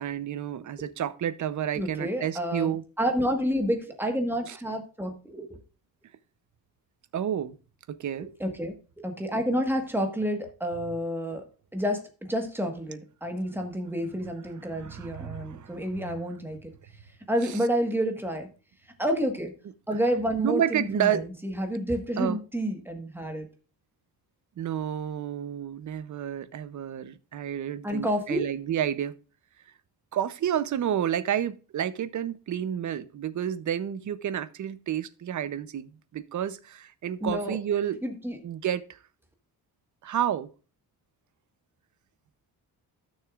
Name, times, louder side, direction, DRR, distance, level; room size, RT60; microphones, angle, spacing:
voice 1, 0.0-2.8 4.5-4.6 7.1-7.6 7.9-8.3 14.6-16.1 17.4-17.6 19.9-20.0 20.4-21.3 22.2-22.4 24.6-29.2 30.1-38.0 38.4-39.0 40.0-40.5, right 10 dB, 50° right, 0.7 m, -30 dB
voice 2, 1.8-5.6 8.4-11.4 11.7-16.7 17.3-18.5 19.0-19.5 19.9-23.5 27.8-28.4 37.2-37.6 38.0-38.4, equal, 5° right, 1.3 m, -29 dB
15.0 x 6.4 x 2.4 m
wide cardioid pair, 180°, 39 cm